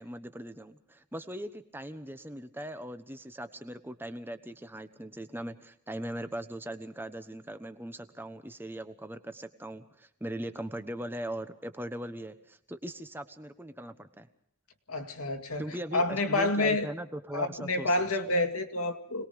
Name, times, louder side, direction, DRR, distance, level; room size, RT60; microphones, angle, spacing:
voice 1, 0.0-14.3 15.6-18.1, right 1 dB, 10° right, 9 dB, 1.1 m, -40 dB
voice 2, 14.9-15.6 15.9-16.9 17.3-19.3, left 2 dB, 85° left, 6 dB, 2.3 m, -28 dB
26.5 x 20.0 x 5.2 m, 0.70 s
head